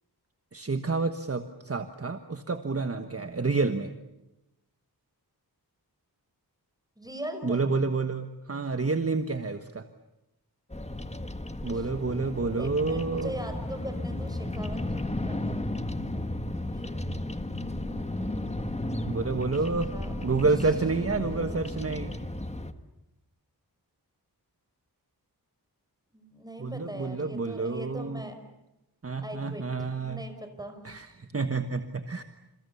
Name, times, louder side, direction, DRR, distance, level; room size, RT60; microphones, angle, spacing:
voice 1, 0.5-3.9 7.4-9.8 11.6-13.3 19.0-19.9 20.2-22.1 26.6-28.2 29.0-30.2 30.8-32.2, right 3 dB, 35° right, 8 dB, 1.4 m, -29 dB
voice 2, 7.0-7.6 11.7-15.6 16.1-16.2 16.9-17.0 17.4-18.0 19.9-20.1 21.0-21.9 26.1-28.3 29.2-30.8, right 1 dB, 10° right, 6 dB, 5.5 m, -41 dB
Bird vocalization bird call bird song, 10.7-22.7, left 1 dB, 15° left, 1.6 m, -34 dB
29.0 x 28.5 x 7.1 m, 0.92 s
wide cardioid pair, 90°, 39 cm